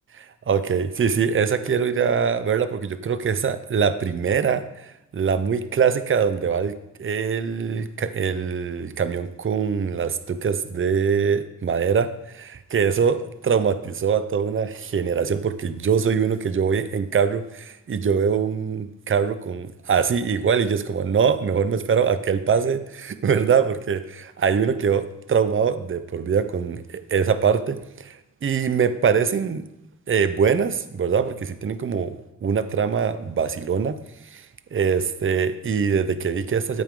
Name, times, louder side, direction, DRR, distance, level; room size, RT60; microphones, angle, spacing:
voice 1, 0.2-12.1 12.3-13.2 13.4-28.2 28.4-29.7 30.1-33.9 34.3-34.4 34.7-36.8, right 6 dB, 40° right, 12 dB, 0.7 m, -23 dB
13.5 x 8.8 x 3.8 m, 0.86 s
cardioid pair, 105°, 33 cm